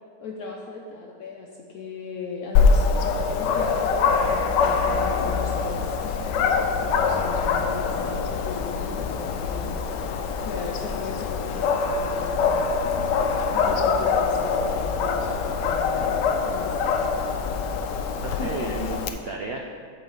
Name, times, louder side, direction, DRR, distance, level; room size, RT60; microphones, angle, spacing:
voice 1, 0.2-6.0 6.4-12.7 13.5-17.1 18.4-18.7, left 4 dB, 65° left, -1 dB, 1.1 m, -38 dB
Dog, 2.5-19.1, left 5 dB, 85° left, 1.2 m, -24 dB
voice 2, 18.1-19.7, right 3 dB, 80° right, 1 dB, 0.5 m, -33 dB
8.5 x 4.0 x 6.7 m, 2.1 s
omnidirectional pair, 1.9 m